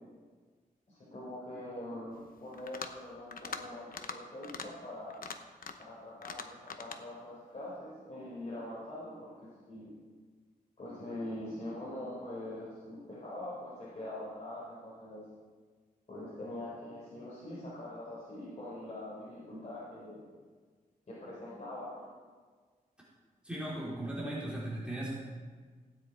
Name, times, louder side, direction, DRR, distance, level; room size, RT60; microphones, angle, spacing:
voice 1, 0.9-5.2 5.8-9.9 10.8-15.2 16.1-20.2 21.1-22.1, left 1 dB, 50° left, -8 dB, 4.1 m, -43 dB
sound 1, 2.5-3.0 3.3-3.6 3.9-4.2 4.4-4.7 5.1-5.9 6.2-7.0, left 5 dB, 70° left, 0.9 m, -42 dB
voice 2, 23.4-25.1, right 1 dB, 5° right, -8 dB, 3.4 m, -37 dB
16.0 x 9.6 x 4.5 m, 1.5 s
wide cardioid pair, 125°, 15 cm